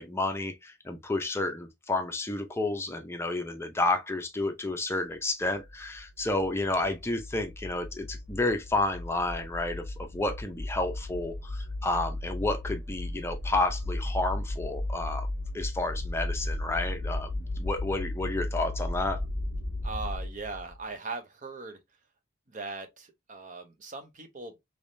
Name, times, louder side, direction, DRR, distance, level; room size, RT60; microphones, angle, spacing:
voice 1, 0.0-15.3 15.5-17.3 17.6-19.2, left 2 dB, 10° left, 0.5 m, -31 dB
sound 1, 5.6-20.8, left 2 dB, 80° right, 1.7 m, -36 dB
sound 2, 11.0-11.8 12.9-14.9 15.9-17.9 18.8-20.2, left 1 dB, 5° right, 1.2 m, -39 dB
voice 2, 19.8-21.8 22.5-24.6, right 3 dB, 40° right, 0.7 m, -39 dB
3.4 x 3.1 x 2.6 m
head